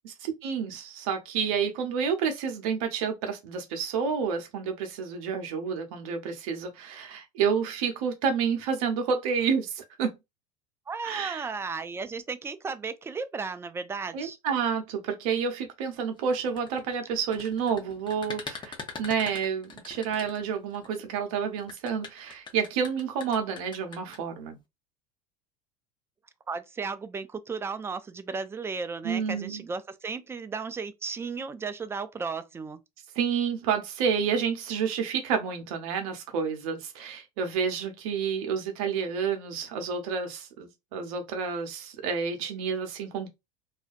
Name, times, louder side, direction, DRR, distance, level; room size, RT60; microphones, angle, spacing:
voice 1, 0.0-10.1 11.0-11.5 14.1-24.6 29.0-29.6 33.2-43.3, right 6 dB, 60° right, 0.8 m, -29 dB
voice 2, 10.9-14.4 26.5-32.8, right 4 dB, 10° right, 0.4 m, -35 dB
sound 1, 16.2-20.9 21.6-24.2, left 4 dB, 20° left, 0.7 m, -42 dB
2.4 x 2.1 x 2.5 m
figure-of-eight pair, 75°, 20 cm